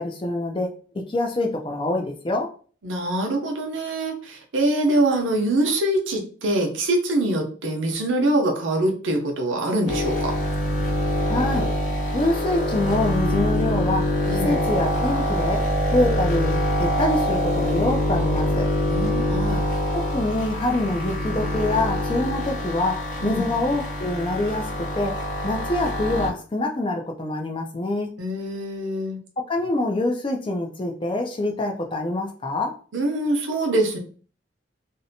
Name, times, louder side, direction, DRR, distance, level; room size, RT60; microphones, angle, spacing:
voice 1, 0.0-2.5 11.3-11.7 12.1-15.6 15.9-18.7 19.9-25.1 25.4-28.1 29.4-32.7, left 2 dB, 25° left, 3 dB, 0.4 m, -25 dB
voice 2, 2.8-10.3 14.3-14.6 18.9-19.6 23.2-23.5 28.2-29.2 32.9-34.0, right 1 dB, 85° right, 2 dB, 0.7 m, -24 dB
sound 1, 9.9-26.3, equal, 40° left, 0.7 m, -24 dB
2.6 x 2.1 x 2.7 m, 0.42 s
head